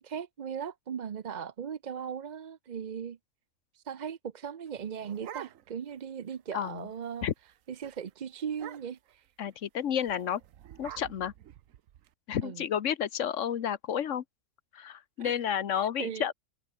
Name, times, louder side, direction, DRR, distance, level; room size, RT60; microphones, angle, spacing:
voice 1, 0.0-3.2 3.7-7.3 7.7-9.3 12.4-12.6 15.2-15.4 15.7-16.3, right 7 dB, 45° right, 0.6 m, -38 dB
sound 1, 4.7-5.9 6.3-6.4 6.7-7.0 7.3-7.5 7.8-8.0 8.5-9.1 10.0-12.1, right 11 dB, 85° right, 1.2 m, -47 dB
voice 2, 6.5-6.9 7.2-7.3 9.4-10.4 10.8-11.3 12.3-14.2 14.7-16.3, left 9 dB, 70° left, 1.3 m, -31 dB
omnidirectional pair, 1.3 m